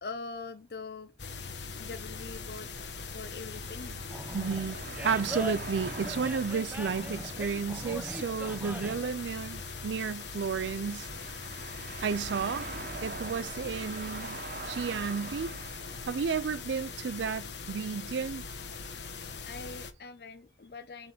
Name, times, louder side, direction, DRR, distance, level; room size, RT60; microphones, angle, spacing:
voice 1, 0.0-1.1 1.8-2.7 3.1-4.0 19.5-21.1, left 4 dB, 60° left, 0.6 m, -43 dB
sound 1, 1.2-19.9, left 4 dB, 80° left, 1.1 m, -41 dB
sound 2, 2.3-17.7, right 3 dB, 50° right, 1.3 m, -45 dB
Animal, 4.1-9.1, equal, 10° right, 0.6 m, -40 dB
voice 2, 4.3-4.8 5.0-11.1 12.0-12.7 13.0-14.4 14.7-15.5 16.1-18.4, right 6 dB, 85° right, 0.4 m, -32 dB
8.4 x 3.6 x 6.0 m
head